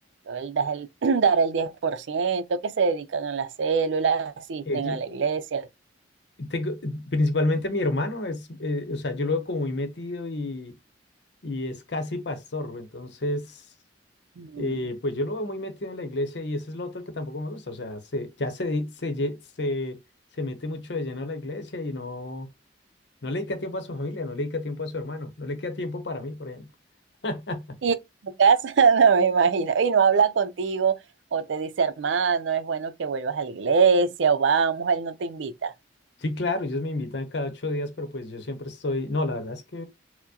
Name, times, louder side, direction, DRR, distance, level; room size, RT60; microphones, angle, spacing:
voice 1, 0.3-5.7 14.4-14.7 27.8-27.9 28.2-31.0 31.3-35.7, right 5 dB, 85° right, 0.4 m, -23 dB
voice 2, 4.7-5.0 6.4-10.7 11.4-13.6 14.6-20.0 20.4-22.5 23.2-26.7 27.2-27.7 36.2-39.8, left 2 dB, 65° left, 0.8 m, -30 dB
4.4 x 2.1 x 2.8 m
head